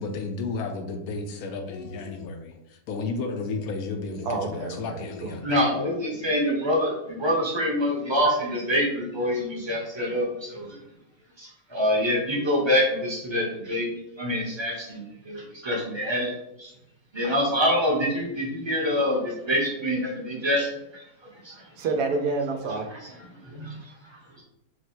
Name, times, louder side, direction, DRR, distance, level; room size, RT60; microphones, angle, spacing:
voice 1, 0.0-5.5, left 3 dB, 75° left, 5 dB, 1.0 m, -33 dB
voice 2, 4.2-5.4 21.8-22.9, right 3 dB, 85° right, 4 dB, 1.2 m, -28 dB
voice 3, 5.4-10.8 11.4-13.9 14.2-16.3 16.6-16.7 17.1-21.0 21.4-21.7 22.9-23.0 23.4-24.2, equal, 25° right, -3 dB, 0.7 m, -26 dB
4.5 x 2.1 x 4.3 m, 0.86 s
omnidirectional pair, 1.6 m